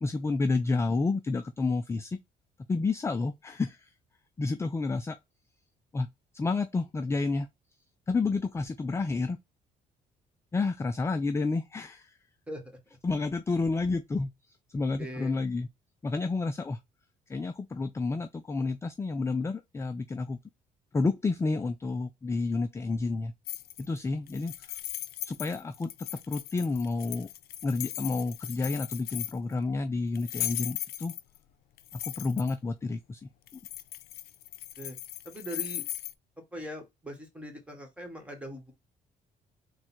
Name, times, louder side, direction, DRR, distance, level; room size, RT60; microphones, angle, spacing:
voice 1, 0.0-2.2 2.7-3.9 4.4-5.2 5.9-6.1 6.3-7.5 8.1-9.4 10.5-12.2 13.0-14.3 14.7-15.7 16.0-16.8 17.3-20.4 20.9-23.3 23.8-24.5 25.3-27.3 27.6-31.1 31.9-33.2 33.5-33.6, left 3 dB, 15° left, 0.4 m, -30 dB
voice 2, 15.0-15.4 34.8-34.9 35.2-35.8 36.5-38.7, equal, 5° right, 1.6 m, -41 dB
sound 1, 23.5-24.0 24.3-29.5 30.1-31.4 31.8-32.5 33.5-36.1, left 15 dB, 75° left, 0.5 m, -38 dB
3.9 x 2.3 x 4.3 m
cardioid pair, 105°, 16 cm